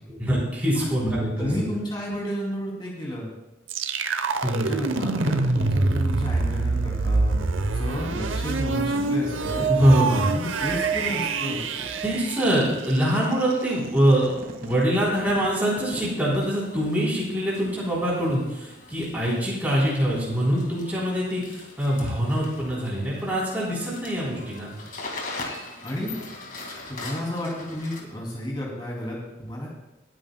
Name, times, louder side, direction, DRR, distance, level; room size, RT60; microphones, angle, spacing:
voice 1, 0.1-1.7 4.4-4.7 9.7-10.3 12.0-24.7, equal, 10° right, -6 dB, 3.5 m, -24 dB
voice 2, 0.7-1.1 1.4-3.3 4.4-7.4 7.7-9.7 10.3-11.6 25.8-26.2 26.9-29.7, equal, 25° left, -3 dB, 2.7 m, -31 dB
sound 1, 3.7-13.5, right 3 dB, 80° right, 0.7 m, -26 dB
sound 2, 9.0-16.4, right 1 dB, 50° right, 1.8 m, -42 dB
sound 3, 15.1-28.0, left 2 dB, 45° left, 2.1 m, -42 dB
26.5 x 9.2 x 2.2 m, 1.0 s
head